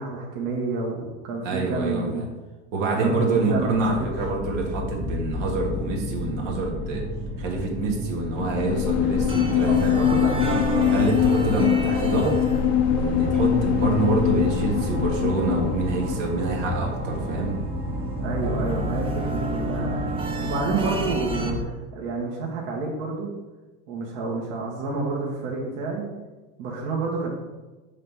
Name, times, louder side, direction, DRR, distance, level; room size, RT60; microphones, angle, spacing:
voice 1, 0.0-2.2 2.9-4.1 9.7-11.0 18.2-23.3 23.9-26.1 26.6-27.3, right 3 dB, 60° right, -2 dB, 1.4 m, -29 dB
voice 2, 1.4-2.3 2.7-7.0 7.4-9.9 10.9-12.4 12.9-17.6, right 3 dB, 80° right, -1 dB, 1.7 m, -26 dB
sound 1, 3.5-21.6, equal, 40° right, 1.6 m, -31 dB
sound 2, 8.4-16.2, left 10 dB, 45° left, 0.4 m, -23 dB
sound 3, 9.3-21.5, right 2 dB, 15° right, 0.6 m, -34 dB
5.6 x 3.4 x 5.6 m, 1.1 s
supercardioid pair, 140°, 37 cm